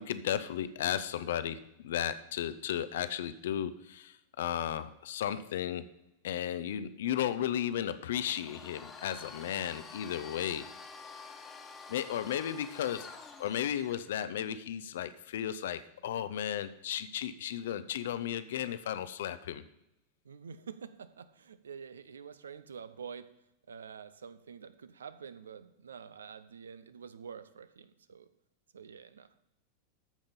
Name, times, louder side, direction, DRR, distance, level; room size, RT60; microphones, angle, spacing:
voice 1, 0.0-5.9 6.2-10.7 11.9-13.1 13.4-19.6, left 10 dB, 60° left, 13 dB, 0.6 m, -34 dB
Domestic sounds home sounds, 8.2-14.0, left 5 dB, 20° left, 1.3 m, -48 dB
voice 2, 20.2-23.3 23.7-28.3 28.7-29.4, right 6 dB, 70° right, 13 dB, 0.6 m, -47 dB
13.5 x 5.2 x 5.4 m, 0.89 s
figure-of-eight pair, 90°, 0 cm